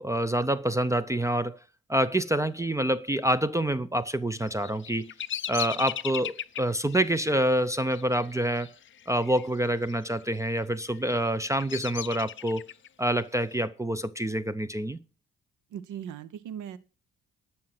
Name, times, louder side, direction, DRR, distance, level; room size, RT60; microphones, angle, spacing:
voice 1, 0.0-1.6 1.9-5.1 5.5-8.7 9.1-12.7 13.0-15.0, right 1 dB, 10° right, 0.6 m, -27 dB
Bird vocalization bird call bird song, 4.4-9.5 9.7-10.3 10.9-12.9, left 10 dB, 40° left, 0.6 m, -38 dB
voice 2, 15.7-16.8, right 9 dB, 85° right, 1.0 m, -38 dB
12.5 x 5.7 x 5.9 m
cardioid pair, 90°, 30 cm